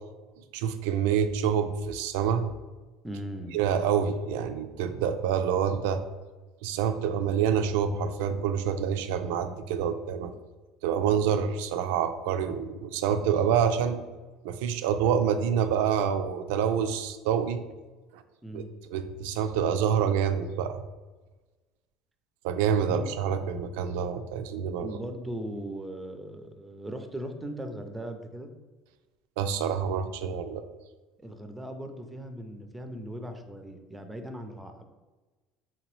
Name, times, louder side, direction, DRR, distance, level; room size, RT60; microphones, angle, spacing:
voice 1, 0.5-2.4 3.5-6.0 6.6-10.3 10.8-14.0 14.4-17.6 18.1-18.2 18.5-18.6 18.9-20.8 22.4-25.0 29.4-30.6, right 8 dB, 85° right, 9 dB, 0.3 m, -27 dB
voice 2, 3.0-3.6 18.4-18.7 22.9-23.1 24.8-28.5 31.2-34.8, right 1 dB, 5° right, 6 dB, 0.4 m, -38 dB
3.8 x 2.9 x 3.0 m, 1.2 s
cardioid pair, 125°, 0 cm